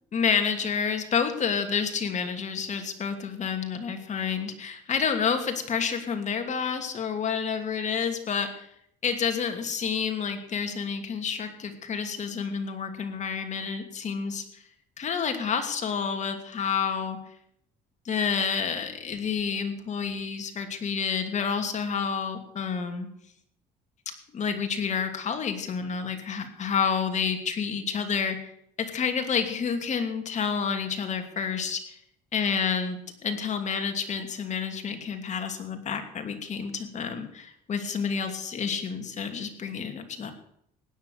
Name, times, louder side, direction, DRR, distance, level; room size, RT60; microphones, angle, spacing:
voice 1, 0.1-8.7 9.0-14.6 15.0-17.2 18.0-23.1 24.1-28.5 28.8-32.0 32.3-40.3, left 6 dB, 45° left, 6 dB, 2.8 m, -29 dB
16.5 x 10.0 x 6.7 m, 0.70 s
cardioid pair, 110°, 17 cm